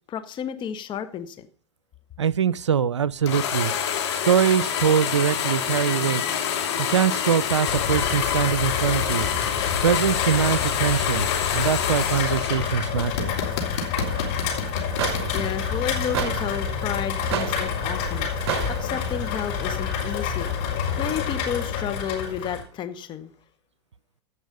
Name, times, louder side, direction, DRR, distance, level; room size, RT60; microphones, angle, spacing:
voice 1, 0.1-1.5 15.3-20.5 21.0-23.3, left 8 dB, 35° left, 1.5 m, -32 dB
voice 2, 2.2-3.7 4.3-6.2 6.9-9.3 9.8-13.3, right 8 dB, 90° right, 0.5 m, -23 dB
sound 1, 3.3-12.7 13.0-15.5, left 8 dB, 70° left, 2.7 m, -27 dB
Rain, 7.7-22.6, left 7 dB, 50° left, 4.4 m, -28 dB
sound 2, 14.0-19.1, right 10 dB, 65° right, 0.8 m, -33 dB
15.5 x 5.4 x 5.4 m
hypercardioid pair, 95°, 15 cm